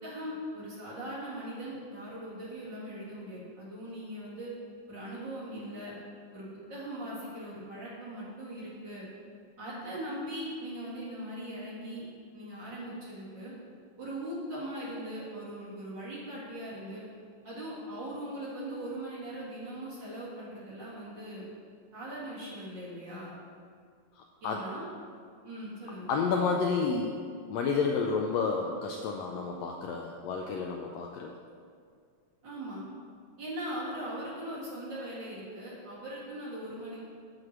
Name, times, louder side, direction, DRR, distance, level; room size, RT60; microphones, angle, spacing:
voice 1, 0.0-4.5 4.9-5.9 6.3-9.0 9.6-12.0 12.3-13.5 14.0-17.0 17.4-21.5 21.9-23.4 24.4-24.8 25.4-26.1 32.4-32.8 33.4-37.0, right 1 dB, 40° right, -7 dB, 2.1 m, -40 dB
voice 2, 24.2-24.6 26.1-27.2 27.5-31.3, left 5 dB, 90° left, 1 dB, 1.5 m, -30 dB
8.0 x 5.0 x 7.3 m, 2.2 s
omnidirectional pair, 3.7 m